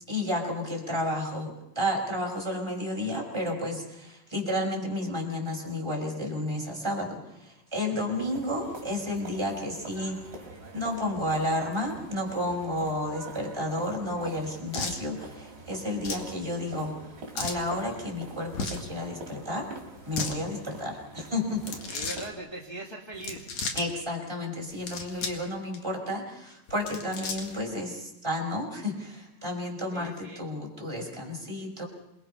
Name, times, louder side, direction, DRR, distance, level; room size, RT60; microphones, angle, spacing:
voice 1, 0.1-10.2 10.7-19.7 20.1-21.8 23.7-31.9, left 1 dB, 5° right, -1 dB, 5.3 m, -32 dB
sound 1, 8.1-22.3, right 2 dB, 30° right, 4.3 m, -45 dB
sound 2, 14.7-15.0 16.0-16.3 17.3-17.6 18.5-18.9 20.0-20.4 21.6-22.3 23.1-23.8 24.7-25.4 25.7-25.8 26.7-27.6, left 4 dB, 55° left, 3.0 m, -34 dB
voice 2, 21.9-23.5 29.9-30.4, right 2 dB, 10° left, -3 dB, 1.2 m, -40 dB
28.0 x 21.5 x 5.6 m, 0.90 s
omnidirectional pair, 4.0 m